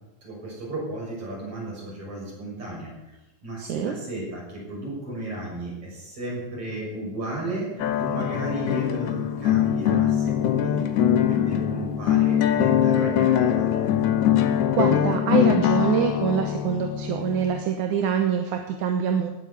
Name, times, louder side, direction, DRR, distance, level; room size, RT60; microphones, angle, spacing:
voice 1, 0.2-13.6, right 1 dB, 45° right, -3 dB, 7.6 m, -34 dB
voice 2, 3.6-3.9 14.7-19.3, right 8 dB, 80° right, 5 dB, 2.6 m, -25 dB
sound 1, 7.8-17.6, left 10 dB, 75° left, 2.4 m, -22 dB
18.5 x 7.8 x 8.2 m, 1.0 s
omnidirectional pair, 3.5 m